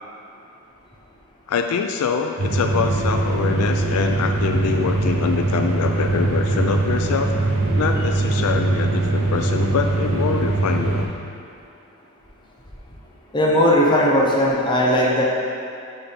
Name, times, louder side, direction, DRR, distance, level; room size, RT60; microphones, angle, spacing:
voice 1, 1.5-7.3 7.7-11.1, left 6 dB, 80° left, 5 dB, 0.3 m, -24 dB
sound 1, 2.4-11.1, right 2 dB, 75° right, 0.9 m, -21 dB
voice 2, 13.3-15.2, left 1 dB, 20° left, -4 dB, 0.8 m, -17 dB
6.7 x 4.0 x 4.2 m, 2.5 s
head